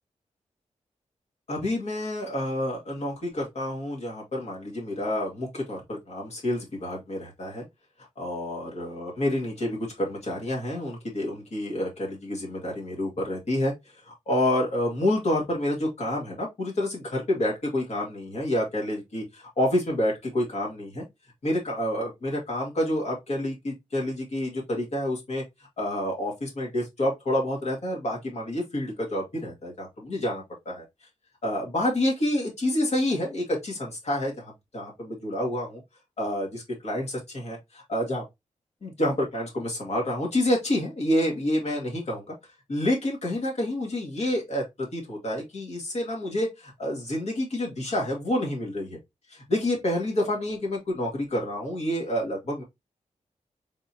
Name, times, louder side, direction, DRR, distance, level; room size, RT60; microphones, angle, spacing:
voice 1, 1.5-7.6 8.2-13.7 14.0-21.0 21.4-25.4 25.8-30.8 31.4-35.8 36.2-38.2 38.8-42.3 42.7-49.0 49.3-52.6, left 1 dB, 55° left, 1.7 m, -28 dB
4.0 x 3.7 x 2.8 m
wide cardioid pair, 135°, 13 cm